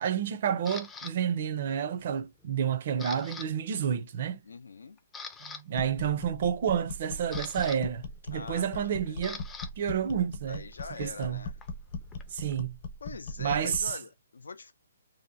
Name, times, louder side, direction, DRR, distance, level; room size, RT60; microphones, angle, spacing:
voice 1, 0.0-4.4 5.4-9.4 9.8-10.6 11.0-11.4 12.3-12.8 13.4-13.8, right 8 dB, 50° right, 0.5 m, -30 dB
Camera, 0.7-1.1 1.7-2.1 2.4-3.5 3.7-3.9 4.5-4.6 5.0-5.6 6.8-9.7 10.0-12.6, left 4 dB, 10° left, 0.4 m, -44 dB
voice 2, 4.4-5.0 8.3-9.2 10.5-11.6 13.0-14.7, left 4 dB, 90° left, 0.4 m, -43 dB
sound 1, 5.7-13.9, left 2 dB, 45° left, 0.9 m, -40 dB
2.7 x 2.1 x 2.5 m
hypercardioid pair, 150°, 0 cm